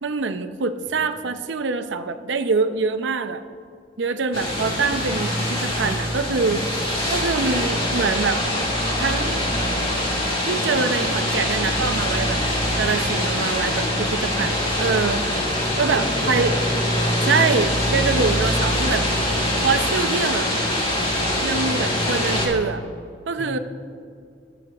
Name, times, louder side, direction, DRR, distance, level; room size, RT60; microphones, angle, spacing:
voice 1, 0.0-3.4 4.0-8.5 9.0-9.4 10.5-12.4 12.8-15.2 15.7-16.6 17.2-19.1 19.6-20.5 21.4-22.8 23.3-23.6, right 4 dB, 80° right, 9 dB, 0.6 m, -24 dB
sound 1, 4.3-22.5, left 1 dB, 30° left, 2.1 m, -23 dB
voice 2, 15.6-17.1 21.6-22.1 23.4-23.5, left 1 dB, 45° left, 1 dB, 2.0 m, -35 dB
23.0 x 7.9 x 2.4 m, 2.4 s
head